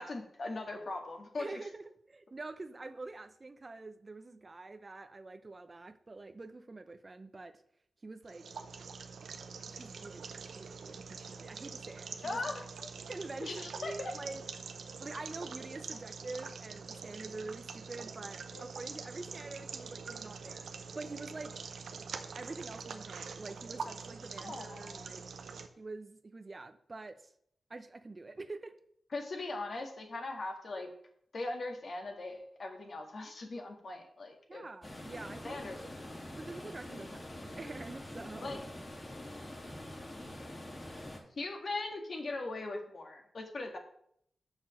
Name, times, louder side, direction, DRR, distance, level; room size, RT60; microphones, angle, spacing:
voice 1, 0.0-1.6 12.2-12.9 13.4-14.2 18.5-18.7 24.4-25.1 29.1-30.9 31.3-34.6 35.4-35.9 38.4-38.6 41.4-43.8, left 2 dB, 60° left, 3 dB, 1.9 m, -40 dB
voice 2, 1.4-7.5 8.0-8.5 9.7-10.2 10.5-12.4 13.1-14.4 15.0-20.6 20.9-21.6 22.4-25.2 25.8-27.3 27.7-28.7 34.5-35.9 36.3-38.6, right 3 dB, 40° right, 9 dB, 0.7 m, -46 dB
sound 1, 8.2-25.7, right 5 dB, 85° right, 0.7 m, -45 dB
sound 2, 34.8-41.2, left 1 dB, 35° left, 2.6 m, -45 dB
6.3 x 6.1 x 6.4 m, 0.68 s
cardioid pair, 55°, 0 cm